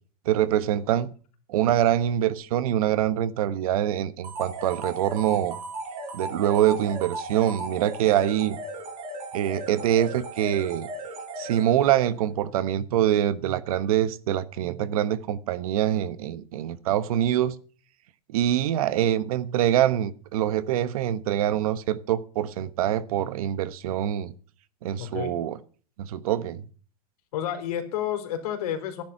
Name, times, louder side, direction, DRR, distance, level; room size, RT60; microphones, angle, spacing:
voice 1, 0.2-1.1 1.5-5.6 6.1-8.6 9.3-10.9 11.4-17.6 18.3-24.3 24.8-25.6 26.0-26.6, right 11 dB, 70° right, 1.2 m, -24 dB
sound 1, 4.2-12.0, right 2 dB, 30° right, 4.5 m, -36 dB
voice 2, 25.0-25.4 27.3-29.0, left 10 dB, 90° left, 3.7 m, -30 dB
13.5 x 10.5 x 5.8 m
supercardioid pair, 180°, 19 cm